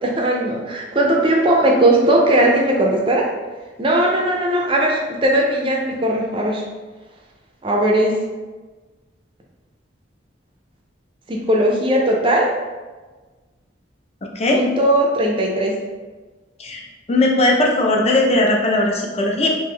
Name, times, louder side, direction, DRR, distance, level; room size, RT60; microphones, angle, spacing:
voice 1, 0.0-3.3 3.8-6.6 7.6-8.2 11.3-12.5 14.5-15.7, right 1 dB, 25° right, 0 dB, 0.4 m, -18 dB
voice 2, 17.1-19.5, left 2 dB, 35° left, 0 dB, 0.5 m, -18 dB
3.4 x 2.6 x 3.3 m, 1.3 s
head